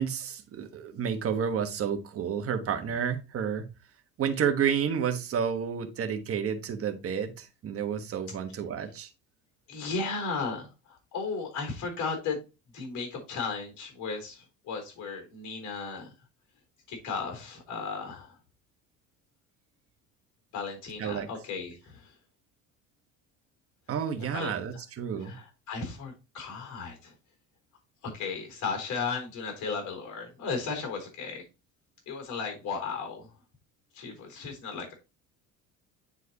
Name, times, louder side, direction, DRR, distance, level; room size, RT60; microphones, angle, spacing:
voice 1, 0.0-3.7 4.2-9.1 21.0-21.3 23.9-25.3, right 7 dB, 45° right, 1.3 m, -30 dB
voice 2, 9.7-12.4 12.7-16.1 16.9-18.3 20.5-22.1 24.2-24.5 25.2-27.1 28.0-31.4 32.1-33.3 33.9-34.9, left 4 dB, 60° left, 3.9 m, -35 dB
9.5 x 4.6 x 2.8 m
cardioid pair, 110°, 33 cm